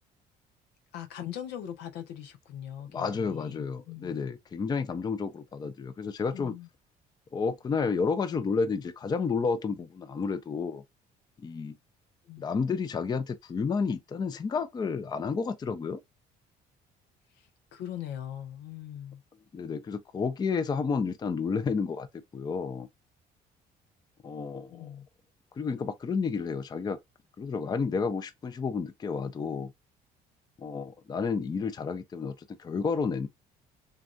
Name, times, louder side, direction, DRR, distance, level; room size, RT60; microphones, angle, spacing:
voice 1, 0.9-4.2 6.3-6.7 12.3-12.5 17.4-19.2 24.7-25.1, left 10 dB, 85° left, 0.7 m, -41 dB
voice 2, 2.9-6.6 7.3-10.8 11.4-11.8 12.4-16.0 19.5-22.1 22.3-22.9 24.2-24.9 25.6-27.0 27.4-29.7 30.6-33.3, left 5 dB, 25° left, 0.4 m, -31 dB
3.4 x 2.3 x 2.4 m
cardioid pair, 110°, 17 cm